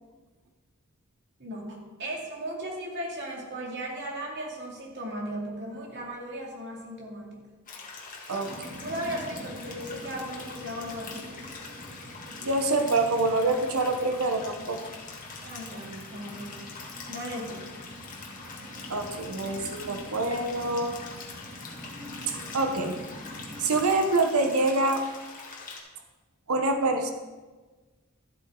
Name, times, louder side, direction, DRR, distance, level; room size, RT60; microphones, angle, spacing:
voice 1, 1.4-7.4 8.8-11.3 15.4-16.6 17.1-17.7, right 1 dB, 50° right, -2 dB, 2.5 m, -36 dB
sound 1, 7.7-25.8, left 4 dB, 40° left, 1.8 m, -43 dB
sound 2, 8.4-23.8, right 1 dB, 20° right, 2.5 m, -45 dB
voice 2, 12.4-14.9 18.9-21.0 22.3-23.0 23.6-25.0 26.5-27.1, right 2 dB, 80° right, 5 dB, 0.9 m, -26 dB
13.0 x 7.9 x 3.8 m, 1.3 s
head